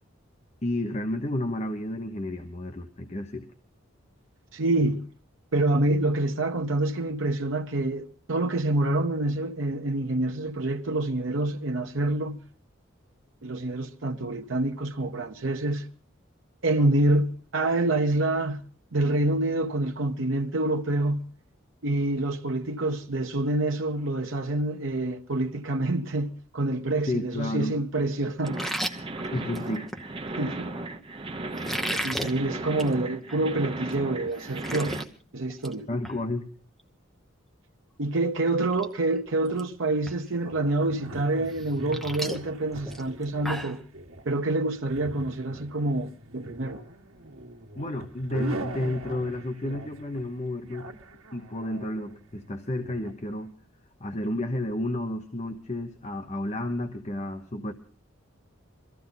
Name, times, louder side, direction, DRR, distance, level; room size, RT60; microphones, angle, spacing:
voice 1, 0.6-3.5 27.1-27.8 29.3-29.9 35.9-36.5 47.8-50.9 51.3-53.5 54.0-57.7, left 1 dB, 30° left, 1.0 m, -31 dB
voice 2, 4.5-5.1 5.5-12.4 13.4-15.9 16.6-18.6 18.9-21.3 21.8-28.7 30.4-30.7 31.9-35.0 35.3-35.9 38.0-43.8 44.3-46.8, right 2 dB, 70° right, 0.9 m, -27 dB
sound 1, 28.4-35.0, right 2 dB, 25° right, 0.9 m, -36 dB
sound 2, 28.5-30.0 31.5-32.3 32.7-32.9 33.3-33.4 33.9-34.0 34.3-35.0 35.4-35.7 36.0-36.2 38.0-38.1 38.6-38.9 39.1-39.6 40.1-40.2 41.5-43.8, equal, ahead, 1.0 m, -34 dB
sound 3, 40.4-53.1, right 1 dB, 85° right, 1.5 m, -41 dB
23.0 x 15.0 x 4.0 m
head